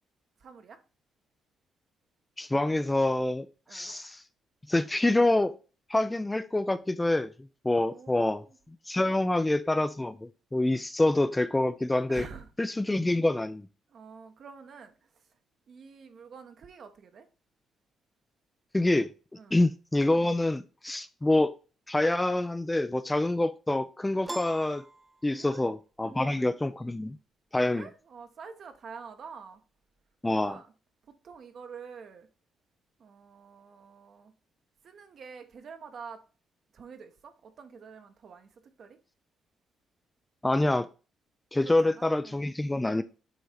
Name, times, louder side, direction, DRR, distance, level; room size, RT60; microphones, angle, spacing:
voice 1, 0.4-0.8 3.7-3.9 7.8-8.6 12.1-12.5 13.9-15.2 15.7-17.3 19.3-19.6 25.3-25.6 26.0-26.5 27.7-29.6 30.3-30.7 31.2-32.3 33.0-34.3 34.8-36.2 36.7-39.0 41.6-42.4, right 5 dB, 55° right, 1.1 m, -47 dB
voice 2, 2.4-3.5 3.7-4.2 4.7-5.6 5.9-7.3 7.6-8.4 8.9-12.3 12.6-13.7 18.7-19.1 19.5-21.5 21.9-24.8 25.2-27.2 27.5-27.9 30.2-30.6 40.4-40.9 41.5-43.0, left 2 dB, 15° left, 0.4 m, -26 dB
Piano, 24.3-25.8, right 1 dB, 10° right, 0.9 m, -42 dB
7.8 x 2.8 x 5.0 m
cardioid pair, 90°, 0 cm